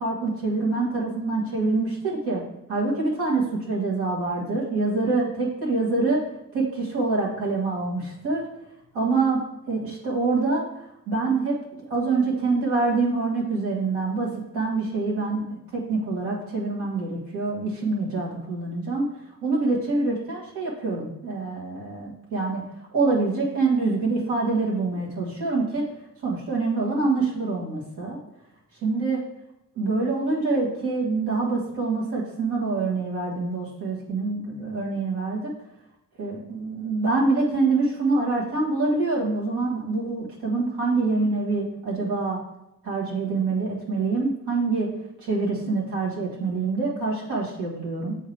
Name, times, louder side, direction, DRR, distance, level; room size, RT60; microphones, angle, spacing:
voice 1, 0.0-2.4 2.7-6.2 6.5-8.4 8.9-9.4 9.7-10.6 11.1-14.3 14.5-19.1 19.4-22.6 22.9-25.8 26.2-28.2 28.8-29.2 29.7-35.4 36.2-42.4 42.8-44.9 45.2-48.2, right 3 dB, 80° right, -3 dB, 1.7 m, -25 dB
7.6 x 3.9 x 3.4 m, 0.83 s
hypercardioid pair, 45°, 39 cm